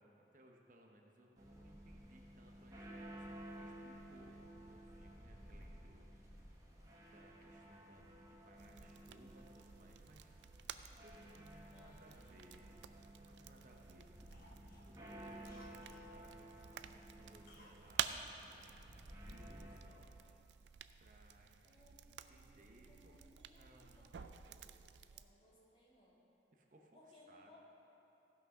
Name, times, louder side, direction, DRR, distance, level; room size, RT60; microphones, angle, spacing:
voice 1, 0.0-6.3 7.1-10.3 11.0-12.8 13.0-14.1 14.8-18.9 19.2-20.2 21.0-23.2 23.5-24.1 26.5-27.6, right 1 dB, 45° right, 1 dB, 0.9 m, -64 dB
sound 1, 1.4-19.8, right 1 dB, 20° right, 1.2 m, -55 dB
voice 2, 8.5-9.0 11.6-12.4 15.3-15.4 16.7-16.9 21.6-26.3 26.9-27.6, left 1 dB, 30° left, -6 dB, 2.3 m, -66 dB
sound 2, 8.6-25.3, right 9 dB, 75° right, 0.4 m, -50 dB
Cough, 12.1-13.3 13.7-13.9 14.3-16.1 17.5-17.8 18.1-18.2, left 2 dB, 55° left, 1.1 m, -66 dB
15.0 x 6.1 x 5.6 m, 3.0 s
head